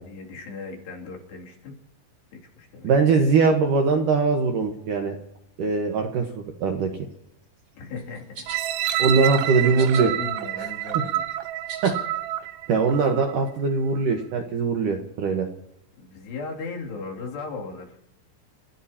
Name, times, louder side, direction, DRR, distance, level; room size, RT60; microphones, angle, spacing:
voice 1, 0.0-1.7 2.3-2.9 7.8-11.4 16.0-18.0, left 4 dB, 65° left, -1 dB, 4.8 m, -37 dB
voice 2, 2.8-5.2 5.6-6.9 9.0-10.1 10.6-10.7 11.8-12.0 12.7-15.5, right 4 dB, 70° right, 3 dB, 2.1 m, -21 dB
sound 1, 8.0-8.6 9.7-10.0 10.5-11.9, right 4 dB, 35° right, 2.8 m, -41 dB
sound 2, 8.5-13.4 14.0-14.1, right 13 dB, 85° right, 3.2 m, -28 dB
30.0 x 15.5 x 2.9 m, 0.77 s
omnidirectional pair, 5.3 m